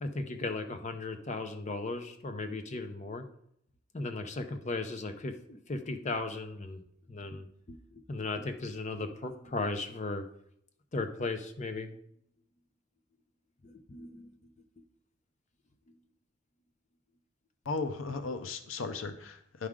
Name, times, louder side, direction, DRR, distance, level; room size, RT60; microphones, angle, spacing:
voice 1, 0.0-3.3 3.9-6.8 7.1-10.3 10.9-11.9 13.6-14.4, left 3 dB, 35° left, 7 dB, 0.6 m, -36 dB
voice 2, 17.6-19.7, left 4 dB, 90° left, 9 dB, 0.6 m, -36 dB
10.0 x 4.8 x 3.6 m, 0.70 s
head